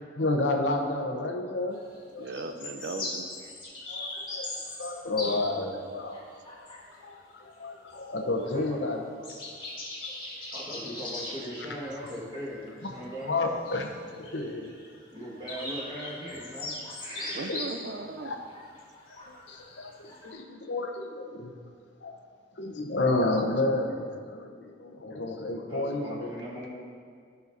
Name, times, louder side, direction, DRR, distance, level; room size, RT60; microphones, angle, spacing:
voice 1, 0.2-1.8 2.1-2.5 3.9-4.5 4.8-6.2 6.9-9.0 12.8-12.9 13.3-14.7 17.5-17.6 18.2-18.4 19.1-19.2 19.5-21.5 22.0-22.2 22.6-26.3, left 2 dB, 70° left, 2 dB, 0.8 m, -31 dB
sound 1, 1.7-2.0 2.3-5.7 6.1-7.1 7.6-8.1 8.5-8.6 8.9-9.0 9.2-20.3, left 2 dB, 25° left, 1.9 m, -40 dB
voice 2, 2.2-3.3 3.9-4.0 17.3-18.3, right 3 dB, 60° right, 7 dB, 0.5 m, -37 dB
voice 3, 10.5-13.4 15.1-16.7 17.0-17.5 25.5-26.7, equal, 25° right, -6 dB, 1.6 m, -39 dB
13.0 x 5.7 x 2.7 m, 2.1 s
head